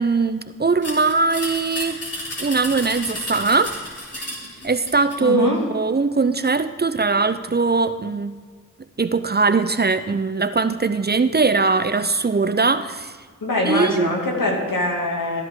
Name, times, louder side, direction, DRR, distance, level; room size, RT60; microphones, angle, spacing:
voice 1, 0.0-2.0 2.4-3.7 4.6-8.4 9.0-13.1 13.6-14.1, right 4 dB, 30° right, 11 dB, 0.6 m, -20 dB
sound 1, 0.8-5.2, left 1 dB, 50° left, 3.6 m, -32 dB
voice 2, 5.2-5.6 13.4-15.4, left 2 dB, 80° left, -1 dB, 2.5 m, -23 dB
14.5 x 11.0 x 3.7 m, 1.5 s
cardioid pair, 50°, 32 cm